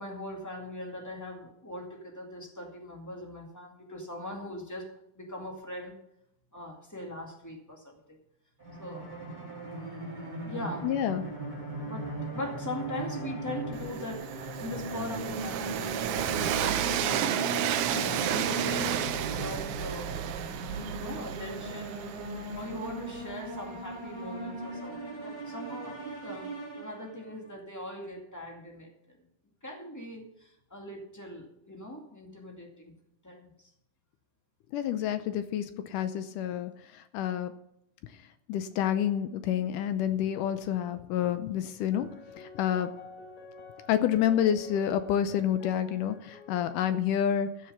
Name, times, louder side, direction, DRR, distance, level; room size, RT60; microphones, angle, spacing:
voice 1, 0.0-4.9 5.2-5.9 6.5-8.2 8.8-9.1 10.4-10.9 11.9-20.2 20.9-29.2 29.6-32.9 33.2-33.5, left 1 dB, 5° left, 0 dB, 1.4 m, -41 dB
sound 1, 8.6-27.4, right 2 dB, 10° right, 4.0 m, -38 dB
voice 2, 10.8-11.2 34.7-36.7 37.1-37.5 38.5-42.9 43.9-47.5, left 10 dB, 75° left, 11 dB, 2.0 m, -28 dB
Train, 13.7-23.6, right 11 dB, 80° right, 1.7 m, -32 dB
sound 2, 41.9-47.0, left 5 dB, 50° left, 3.2 m, -49 dB
14.5 x 6.7 x 7.1 m, 0.79 s
omnidirectional pair, 4.2 m